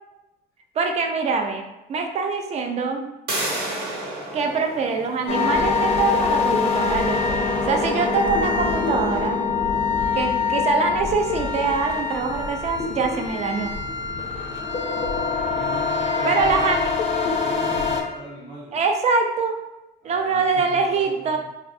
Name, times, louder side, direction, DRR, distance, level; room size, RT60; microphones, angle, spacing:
voice 1, 0.8-1.6 1.9-3.1 4.3-7.4 7.7-9.4 10.1-13.7 16.2-16.9 18.7-19.6 20.0-21.4, right 4 dB, 40° right, 4 dB, 0.4 m, -24 dB
sound 1, 3.3-8.9, right 1 dB, 70° right, 1.0 m, -34 dB
sound 2, 5.3-18.0, left 4 dB, 35° left, 0.4 m, -24 dB
voice 2, 15.5-16.8 17.4-18.8 20.0-21.4, right 1 dB, 90° right, -8 dB, 1.1 m, -38 dB
2.6 x 2.1 x 2.5 m, 0.99 s
cardioid pair, 110°, 17 cm